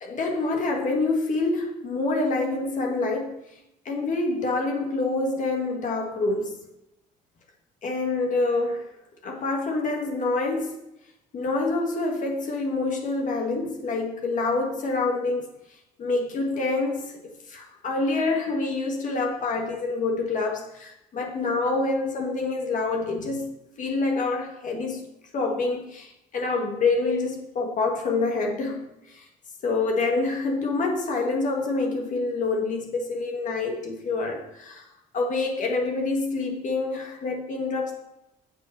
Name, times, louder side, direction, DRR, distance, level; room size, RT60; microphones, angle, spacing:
voice 1, 0.0-3.4 3.8-6.6 7.8-8.9 9.2-10.8 11.3-15.5 16.0-25.0 25.3-29.3 29.6-34.9 35.1-37.9, left 3 dB, 50° left, 1 dB, 1.7 m, -27 dB
7.9 x 6.7 x 6.0 m, 0.89 s
cardioid pair, 110°, 17 cm